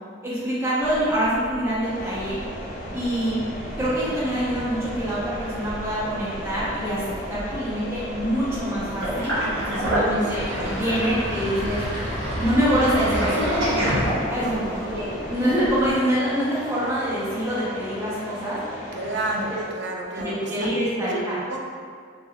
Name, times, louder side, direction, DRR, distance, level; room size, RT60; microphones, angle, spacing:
voice 1, 0.2-2.4 2.9-3.4 3.8-11.8 12.4-13.4 14.3-18.6 19.3-19.6 20.1-21.4, equal, 10° right, -10 dB, 0.6 m, -25 dB
sound 1, 0.8-15.9, equal, 90° left, 0.7 m, -37 dB
sound 2, 1.8-19.7, equal, 45° left, 0.4 m, -37 dB
Sink (filling or washing), 9.0-14.6, equal, 80° right, 1.0 m, -26 dB
voice 2, 10.1-10.8 14.4-15.1 18.9-20.7 21.5-21.6, right 2 dB, 60° right, 0 dB, 0.4 m, -32 dB
3.5 x 2.2 x 2.3 m, 2.1 s
head